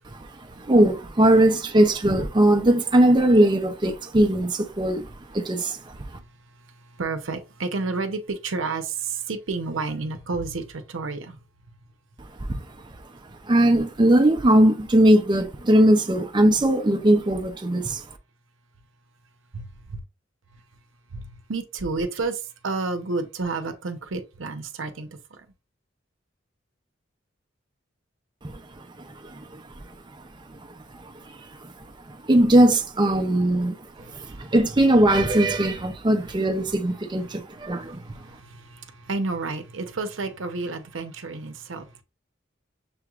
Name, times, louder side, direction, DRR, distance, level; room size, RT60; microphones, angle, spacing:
voice 1, 0.1-5.8 13.5-18.0 28.4-28.6 29.0-29.6 30.5-30.6 31.4-31.7 32.1-38.0, right 1 dB, 25° right, 0.5 m, -20 dB
voice 2, 6.6-11.4 19.5-20.0 21.1-25.5 34.0-34.5 37.3-42.0, right 3 dB, 85° right, 0.8 m, -31 dB
6.8 x 3.0 x 2.4 m
head